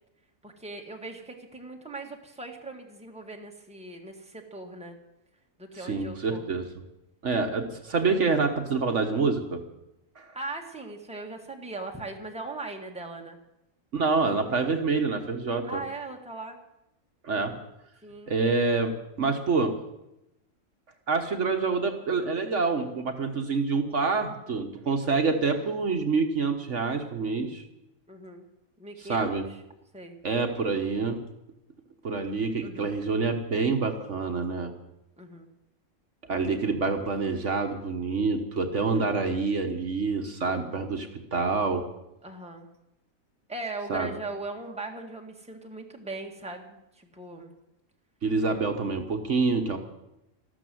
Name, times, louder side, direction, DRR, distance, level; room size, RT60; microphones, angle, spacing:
voice 1, 0.4-5.0 5.6-6.4 10.3-13.4 15.6-16.6 18.0-18.3 28.1-28.4 28.8-29.3 29.9-30.2 32.6-32.9 35.2-35.5 38.8-39.1 42.2-42.7 43.5-47.5 48.5-48.6, right 2 dB, 5° right, 2 dB, 1.6 m, -39 dB
voice 2, 5.7-6.7 7.2-9.6 10.2-10.3 13.9-15.8 17.2-17.5 18.3-19.7 21.1-27.6 29.1-29.4 30.2-31.2 32.0-34.7 36.3-41.8 43.9-44.2 48.2-49.8, right 4 dB, 55° right, 5 dB, 1.5 m, -27 dB
13.5 x 13.0 x 7.7 m, 0.89 s
omnidirectional pair, 1.5 m